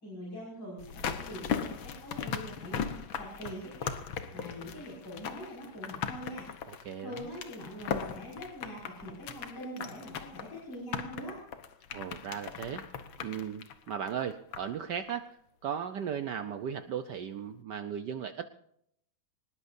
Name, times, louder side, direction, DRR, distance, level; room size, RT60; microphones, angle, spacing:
voice 1, 0.0-3.9 4.3-6.5 7.0-11.4, equal, 55° left, -5 dB, 6.7 m, -43 dB
sound 1, 0.8-14.8 15.1-15.2, left 7 dB, 75° left, 1.9 m, -38 dB
voice 2, 6.7-7.3 11.9-12.8 13.2-15.4 15.6-18.5, right 8 dB, 65° right, 9 dB, 1.3 m, -36 dB
24.0 x 20.0 x 2.7 m, 0.72 s
omnidirectional pair, 2.2 m